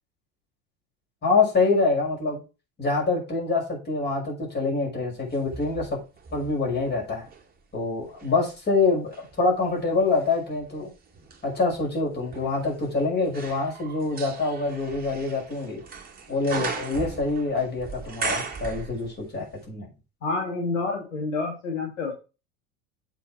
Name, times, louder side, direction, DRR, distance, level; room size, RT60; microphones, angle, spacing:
voice 1, 1.2-2.4 2.8-5.9 6.3-7.3 7.7-10.9 11.4-15.8 16.3-19.9, left 3 dB, 25° left, -1 dB, 5.6 m, -25 dB
sound 1, 5.3-7.5 8.0-19.4 19.6-19.7, right 4 dB, 20° right, 1.9 m, -38 dB
voice 2, 20.2-22.1, left 3 dB, 65° left, 0 dB, 2.5 m, -28 dB
7.5 x 6.9 x 4.5 m, 0.30 s
figure-of-eight pair, 75°, 41 cm